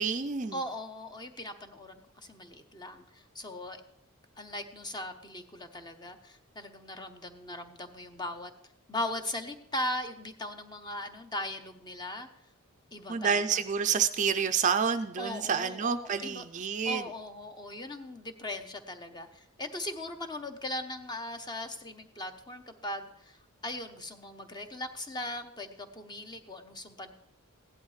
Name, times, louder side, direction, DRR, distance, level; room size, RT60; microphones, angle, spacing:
voice 1, 0.0-0.6 13.1-17.1, right 6 dB, 35° right, 9 dB, 0.4 m, -28 dB
voice 2, 0.5-3.8 4.4-8.5 8.9-12.3 12.9-13.6 15.2-16.4 16.9-23.4 23.6-27.1, left 1 dB, 20° left, 7 dB, 0.8 m, -39 dB
16.0 x 11.5 x 3.2 m, 0.73 s
head